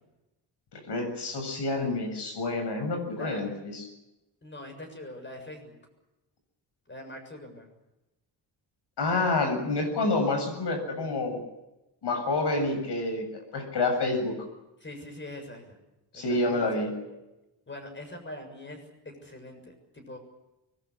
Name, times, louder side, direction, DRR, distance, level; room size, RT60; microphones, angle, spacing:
voice 1, 0.7-3.8 9.0-11.4 12.0-14.3 16.1-16.9, left 2 dB, 75° left, 5 dB, 7.5 m, -28 dB
voice 2, 3.1-3.5 4.4-5.7 6.9-7.7 14.8-15.8 16.1-17.2 17.7-20.2, left 1 dB, 25° left, 5 dB, 7.2 m, -43 dB
24.5 x 21.0 x 8.4 m, 0.98 s
wide cardioid pair, 135°, 41 cm